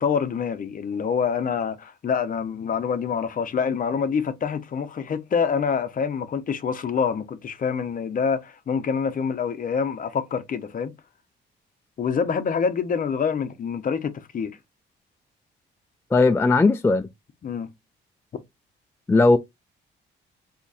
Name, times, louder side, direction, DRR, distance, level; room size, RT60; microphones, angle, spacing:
voice 1, 0.0-10.9 12.0-14.5 17.4-17.7, left 6 dB, 45° left, 0.6 m, -26 dB
voice 2, 16.1-17.1 19.1-19.4, left 3 dB, 10° left, 0.3 m, -17 dB
4.0 x 2.8 x 2.4 m
cardioid pair, 90°, 20 cm